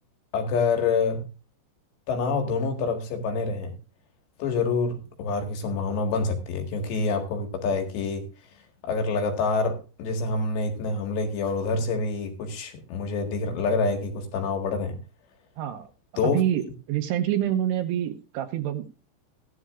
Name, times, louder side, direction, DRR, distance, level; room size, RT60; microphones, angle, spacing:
voice 1, 0.3-1.2 2.1-3.7 4.4-8.3 8.8-15.0 16.2-16.4, left 4 dB, 70° left, 3 dB, 3.9 m, -27 dB
voice 2, 15.6-15.9 16.2-18.9, right 11 dB, 75° right, 7 dB, 2.8 m, -27 dB
16.5 x 11.5 x 2.5 m, 0.32 s
omnidirectional pair, 5.2 m